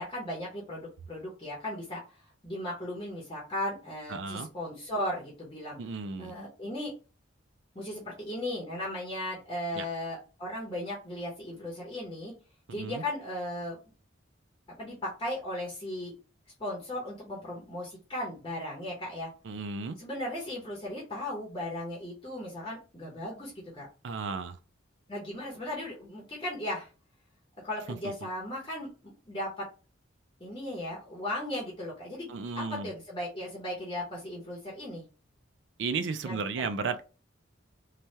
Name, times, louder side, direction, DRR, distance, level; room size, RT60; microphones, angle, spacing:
voice 1, 0.0-2.2 2.4-5.8 6.2-6.9 7.7-12.3 12.7-13.8 14.8-16.1 16.6-19.3 20.0-23.9 25.1-26.9 27.6-29.7 30.4-35.0 36.2-36.7, left 1 dB, 25° left, 0.8 m, -36 dB
voice 2, 4.1-4.5 5.8-6.3 9.7-9.8 12.7-13.0 19.4-20.0 24.0-24.6 27.9-28.0 28.2-28.3 32.3-32.9 35.8-37.0, right 4 dB, 65° right, 0.4 m, -34 dB
3.2 x 2.2 x 2.7 m
head